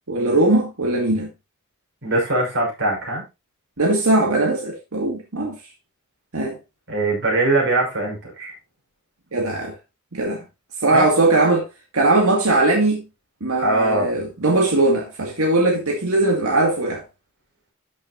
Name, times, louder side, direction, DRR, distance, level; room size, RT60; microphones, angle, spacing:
voice 1, 0.1-1.3 3.8-5.6 6.3-6.6 9.3-9.7 10.1-10.4 10.8-11.7 11.9-13.0 13.4-17.0, right 2 dB, 75° right, 2.1 m, -19 dB
voice 2, 2.0-3.2 6.9-8.5 10.9-11.1 13.6-14.1, right 2 dB, 55° right, 5.8 m, -21 dB
12.0 x 6.6 x 2.7 m
head